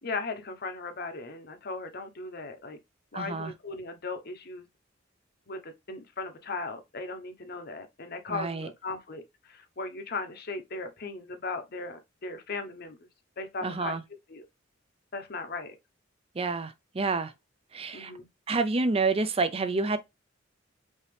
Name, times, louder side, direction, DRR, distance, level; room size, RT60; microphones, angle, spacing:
voice 1, 0.0-2.8 3.1-4.7 5.5-13.0 13.4-14.0 14.3-14.4 15.1-15.7 17.9-18.3, left 3 dB, 55° left, 1.0 m, -37 dB
voice 2, 3.1-3.5 8.3-8.7 13.6-14.0 16.4-17.3 17.7-18.1 18.5-20.0, right 3 dB, 30° right, 0.6 m, -28 dB
5.4 x 2.9 x 3.4 m
head